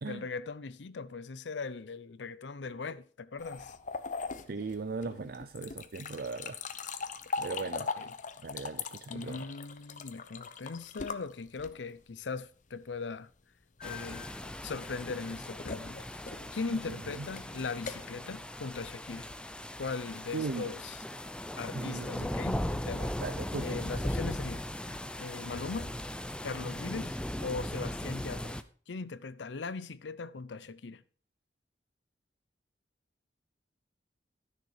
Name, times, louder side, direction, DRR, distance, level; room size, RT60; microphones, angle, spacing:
voice 1, 0.1-3.8 5.2-5.3 7.5-8.1 9.1-13.3 13.8-14.3 14.6-16.2 16.5-19.3 19.8-21.0 21.6-23.2 23.6-26.0 26.4-28.6 28.9-31.0, left 4 dB, 80° left, 0.6 m, -40 dB
sound 1, 3.4-12.0 13.8-19.5, left 4 dB, 45° left, 0.7 m, -41 dB
voice 2, 4.5-6.9 7.4-7.9 8.4-9.4 17.2-17.3 20.3-20.7 21.7-22.3 23.2-23.9, right 4 dB, 55° right, 0.5 m, -38 dB
sound 2, 13.8-28.6, left 1 dB, 5° left, 0.5 m, -38 dB
13.0 x 6.6 x 4.8 m
head